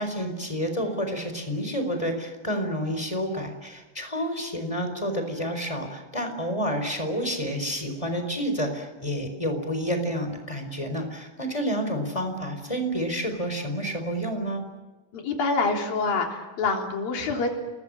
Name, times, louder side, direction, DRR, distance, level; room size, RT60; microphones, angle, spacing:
voice 1, 0.0-14.6, equal, 10° left, 6 dB, 3.9 m, -29 dB
voice 2, 15.1-17.5, left 3 dB, 55° left, 2 dB, 5.0 m, -26 dB
29.5 x 20.5 x 8.8 m, 1.2 s
omnidirectional pair, 5.0 m